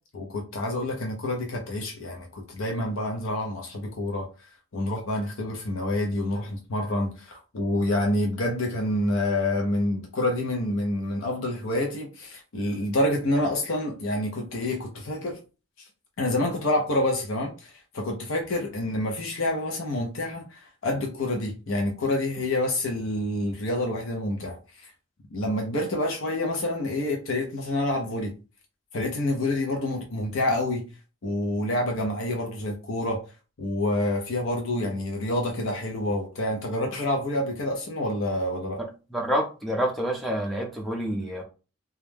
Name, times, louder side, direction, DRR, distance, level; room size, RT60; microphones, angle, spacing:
voice 1, 0.1-4.3 4.7-15.4 16.2-24.9 25.3-28.3 28.9-30.9 31.2-33.2 33.6-38.8, left 1 dB, 75° left, 0.6 m, -27 dB
voice 2, 39.1-41.4, equal, ahead, 0.4 m, -27 dB
2.3 x 2.1 x 3.2 m
head